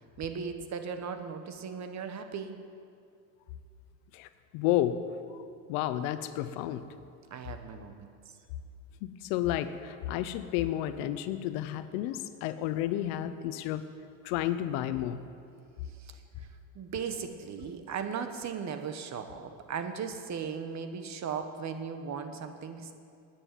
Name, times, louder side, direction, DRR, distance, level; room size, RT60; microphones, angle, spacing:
voice 1, 0.2-2.6 7.3-8.1 16.0-16.5 16.7-22.9, right 6 dB, 40° right, 8 dB, 1.3 m, -37 dB
voice 2, 4.1-5.0 5.7-6.9 9.0-13.8 14.2-15.2, left 13 dB, 75° left, 12 dB, 0.9 m, -31 dB
9.9 x 8.7 x 9.1 m, 2.4 s
supercardioid pair, 95°, 42 cm